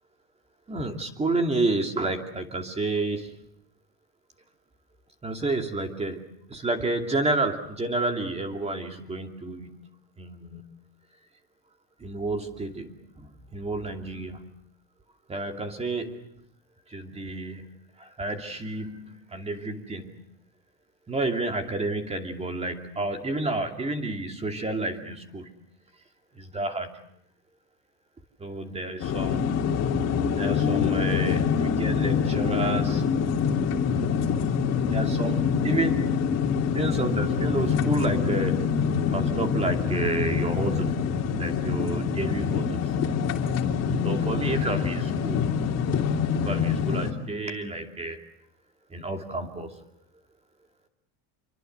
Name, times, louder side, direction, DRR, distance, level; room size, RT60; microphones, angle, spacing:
voice 1, 0.7-3.3 5.2-9.8 10.2-10.7 12.0-13.3 13.5-14.6 15.3-16.3 16.9-17.7 18.0-20.1 21.1-25.6 26.3-27.0 28.4-29.6 30.3-33.0 34.9-36.2 36.7-38.8 39.1-43.0 44.0-45.5 46.3-48.2 48.9-49.8, right 2 dB, 15° right, 5 dB, 2.7 m, -30 dB
sound 1, 29.0-47.1, left 6 dB, 40° left, 3.0 m, -25 dB
27.5 x 24.0 x 8.0 m, 0.72 s
cardioid pair, 165°, 41 cm